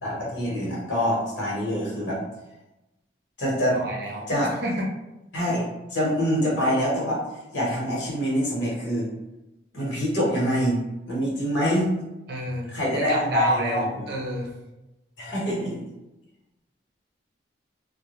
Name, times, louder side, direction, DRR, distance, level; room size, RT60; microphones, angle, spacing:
voice 1, 0.0-2.2 3.4-3.8 4.3-4.5 5.3-7.2 7.5-9.1 9.7-10.8 11.1-11.9 12.7-13.8 15.2-15.7, equal, 75° left, -5 dB, 1.1 m, -25 dB
voice 2, 3.7-4.3 4.6-4.8 12.3-14.5, right 1 dB, 60° right, -2 dB, 0.6 m, -29 dB
2.2 x 2.1 x 3.0 m, 0.98 s
head